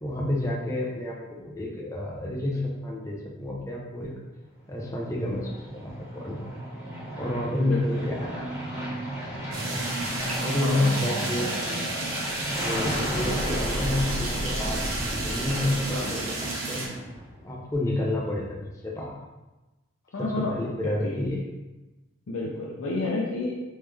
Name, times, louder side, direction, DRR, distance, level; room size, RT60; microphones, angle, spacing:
voice 1, 0.0-4.2 4.7-6.5 7.2-8.7 10.4-11.9 12.6-16.9 17.4-19.2 20.2-21.4, left 1 dB, 15° left, -3 dB, 0.6 m, -30 dB
Aircraft, 4.7-17.5, equal, 15° right, 1.3 m, -33 dB
voice 2, 7.6-8.0 10.5-11.0 12.8-13.4 15.9-16.3 20.1-20.5 20.8-21.2 22.3-23.6, left 2 dB, 70° left, -3 dB, 0.5 m, -31 dB
sound 1, 9.5-16.9, right 2 dB, 80° right, 1.0 m, -33 dB
3.5 x 3.1 x 3.3 m, 1.1 s
head